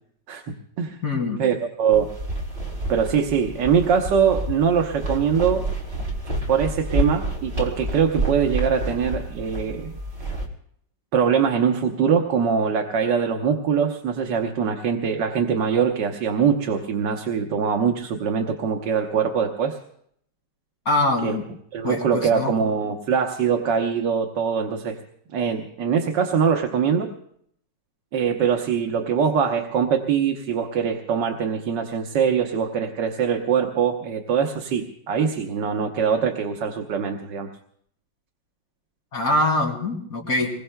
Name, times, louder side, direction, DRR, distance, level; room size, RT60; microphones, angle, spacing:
voice 1, 0.3-1.0 1.4-2.1 2.9-5.7 6.5-9.9 11.1-19.8 21.2-21.4 21.7-25.0 25.3-27.1 28.1-37.5, right 7 dB, 80° right, 3 dB, 1.6 m, -23 dB
voice 2, 1.0-1.4 20.8-21.4 21.8-22.5 39.1-40.5, left 2 dB, 55° left, 0 dB, 3.2 m, -23 dB
sound 1, 1.9-10.4, right 1 dB, 45° right, 2.9 m, -29 dB
26.5 x 21.5 x 2.2 m, 0.68 s
omnidirectional pair, 1.9 m